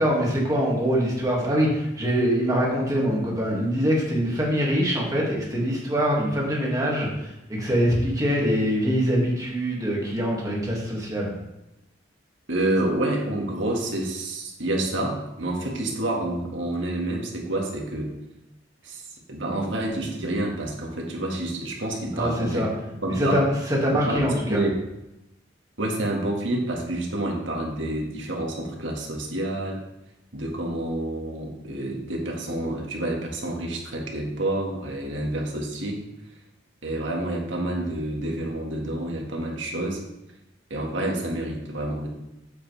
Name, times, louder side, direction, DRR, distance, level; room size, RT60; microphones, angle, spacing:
voice 1, 0.0-11.3 22.1-22.7 23.1-24.6, equal, 20° right, -3 dB, 2.1 m, -24 dB
voice 2, 12.5-18.1 18.8-19.0 19.3-22.7 23.0-23.4 23.9-24.7 25.8-29.8 30.3-36.0 36.8-40.0 40.7-42.1, right 1 dB, 85° right, -1 dB, 1.8 m, -28 dB
8.0 x 7.3 x 3.4 m, 0.93 s
head